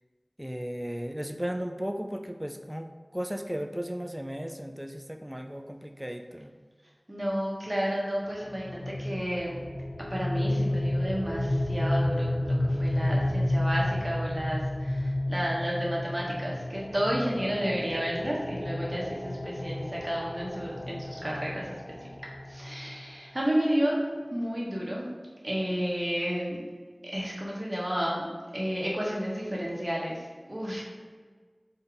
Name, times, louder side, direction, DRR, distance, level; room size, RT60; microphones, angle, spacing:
voice 1, 0.4-6.5, equal, 10° right, 5 dB, 0.3 m, -35 dB
voice 2, 7.1-9.6 10.1-21.8 22.5-24.0 24.3-25.1 25.4-26.6 27.0-28.3 28.5-30.8, equal, 40° right, -4 dB, 1.2 m, -31 dB
sound 1, 8.5-23.3, left 1 dB, 80° left, 0.8 m, -31 dB
4.1 x 3.8 x 3.4 m, 1.5 s
wide cardioid pair, 45°, 0 cm